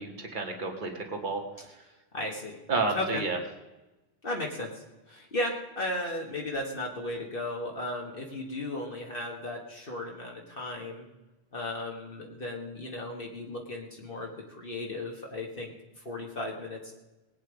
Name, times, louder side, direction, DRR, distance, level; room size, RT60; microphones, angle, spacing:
voice 1, 0.0-1.4 2.7-3.4, right 3 dB, 50° right, 2 dB, 1.9 m, -30 dB
voice 2, 2.1-2.6 2.9-3.2 4.2-11.1 11.5-16.9, left 1 dB, 60° left, 0 dB, 1.9 m, -35 dB
19.0 x 9.2 x 5.1 m, 1.1 s
omnidirectional pair, 1.1 m